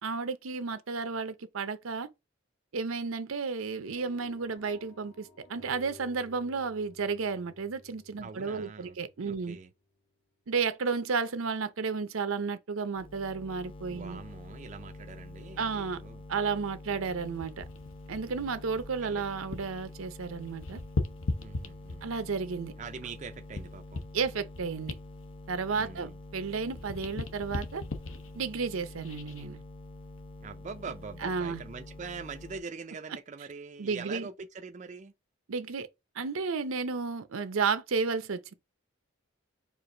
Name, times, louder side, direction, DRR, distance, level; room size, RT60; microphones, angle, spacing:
voice 1, 0.0-2.1 2.7-9.6 10.5-14.2 15.6-16.0 16.3-17.7 18.1-20.8 22.0-22.7 24.1-25.0 25.5-27.8 28.3-29.6 31.2-31.6 33.8-34.3 35.5-35.9 36.2-38.5, right 5 dB, 85° right, 0.6 m, -32 dB
sound 1, 3.8-10.0, left 3 dB, 50° left, 1.6 m, -55 dB
voice 2, 8.2-9.0 9.2-9.7 13.9-16.2 16.9-17.1 19.0-19.2 21.4-22.2 22.8-24.0 25.7-26.2 30.4-35.1, right 5 dB, 35° right, 0.3 m, -43 dB
sound 2, 12.9-32.6, left 2 dB, 25° left, 0.7 m, -47 dB
sound 3, 17.1-19.8 20.1-22.3 22.8-26.4 26.6-29.4 30.0-30.2, left 3 dB, 70° left, 0.7 m, -38 dB
4.6 x 2.5 x 3.8 m
head